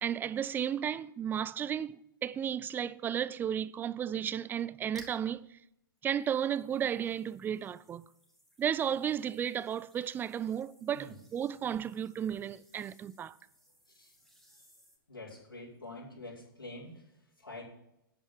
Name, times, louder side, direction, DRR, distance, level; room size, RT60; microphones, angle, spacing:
voice 1, 0.0-5.5 6.0-8.1 8.6-13.4, right 9 dB, 15° right, 0.4 m, -33 dB
sound 1, 4.9-5.3 6.0-15.0, equal, ahead, 2.7 m, -61 dB
voice 2, 15.1-17.6, left 2 dB, 90° left, 5.2 m, -47 dB
9.3 x 8.9 x 8.0 m
figure-of-eight pair, 110°, 12 cm